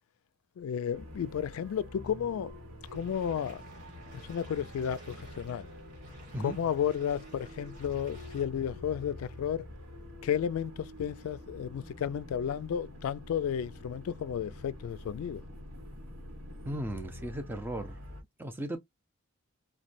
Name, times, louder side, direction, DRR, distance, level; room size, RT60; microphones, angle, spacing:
voice 1, 0.6-2.5 2.9-3.6 4.2-5.7 6.4-9.7 10.2-15.4, left 8 dB, 80° left, 0.3 m, -33 dB
sound 1, 0.9-18.2, left 1 dB, 80° right, 1.1 m, -47 dB
sound 2, 2.8-8.4, right 2 dB, 35° right, 1.5 m, -55 dB
voice 2, 16.6-18.0 18.4-18.8, right 1 dB, 10° right, 0.5 m, -36 dB
3.1 x 2.2 x 2.5 m
head